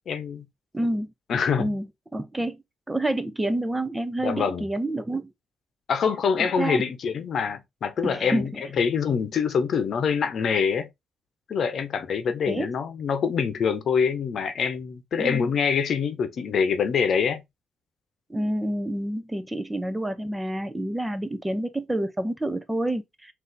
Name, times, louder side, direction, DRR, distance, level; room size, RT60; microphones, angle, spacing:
voice 1, 0.1-0.4 1.3-1.7 4.2-4.7 5.9-10.9 11.5-17.4, left 6 dB, 60° left, 0.8 m, -25 dB
voice 2, 0.7-1.1 1.6-1.9 2.1-5.3 6.4-6.8 8.0-8.5 12.4-12.7 15.2-15.5 18.3-23.3, right 1 dB, 10° right, 0.6 m, -28 dB
3.9 x 2.7 x 3.8 m
cardioid pair, 90°, 0 cm